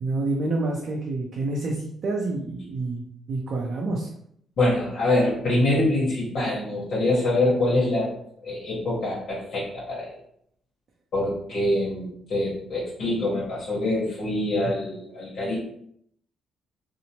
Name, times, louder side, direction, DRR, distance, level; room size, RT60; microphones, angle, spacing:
voice 1, 0.0-4.1, right 2 dB, 55° right, -2 dB, 0.5 m, -28 dB
voice 2, 4.6-8.1 8.4-10.1 11.1-15.6, left 1 dB, 65° left, -8 dB, 1.1 m, -25 dB
2.8 x 2.0 x 2.8 m, 0.70 s
cardioid pair, 90°, 0 cm